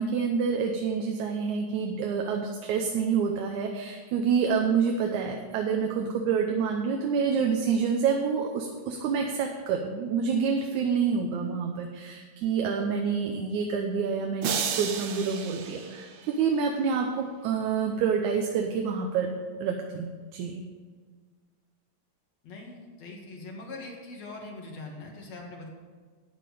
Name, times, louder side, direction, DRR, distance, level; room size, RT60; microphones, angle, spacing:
voice 1, 0.0-19.3 19.6-20.6, right 6 dB, 85° right, 2 dB, 2.3 m, -27 dB
sound 1, 14.4-16.7, right 7 dB, 65° right, 1.3 m, -33 dB
voice 2, 22.4-25.7, left 2 dB, 65° left, 0 dB, 3.0 m, -42 dB
13.0 x 9.0 x 5.0 m, 1.5 s
omnidirectional pair, 3.3 m